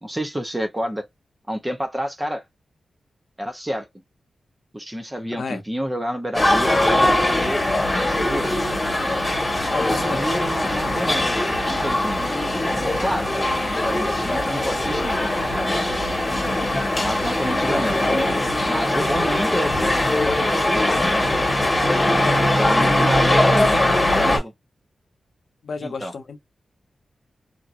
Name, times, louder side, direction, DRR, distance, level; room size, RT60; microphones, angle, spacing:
voice 1, 0.0-1.1 1.5-2.4 3.4-3.9 4.7-7.6 7.9-8.5 9.8-12.3 13.0-13.3 13.6-15.8 17.0-18.1 18.7-21.2 22.4-24.5 25.8-26.1, equal, 10° right, 0.7 m, -29 dB
sound 1, 6.3-24.4, left 1 dB, 15° left, 1.5 m, -21 dB
voice 2, 9.7-10.2 22.2-24.4 25.6-26.4, left 4 dB, 60° left, 0.8 m, -30 dB
2.8 x 2.6 x 2.5 m
wide cardioid pair, 135°, 0 cm